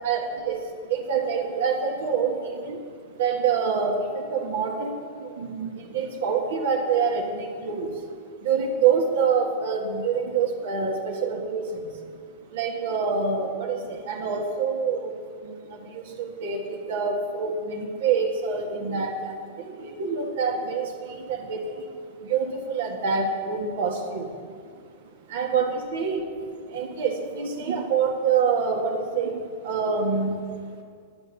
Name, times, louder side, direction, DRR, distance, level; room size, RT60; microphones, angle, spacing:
voice 1, 0.0-2.9 3.1-8.0 8.4-12.0 12.5-21.9 22.2-24.4 25.3-26.2 26.7-30.4 30.8-30.9, right 5 dB, 65° right, 1 dB, 1.7 m, -26 dB
12.0 x 8.3 x 6.9 m, 2.1 s
supercardioid pair, 160°, 0 cm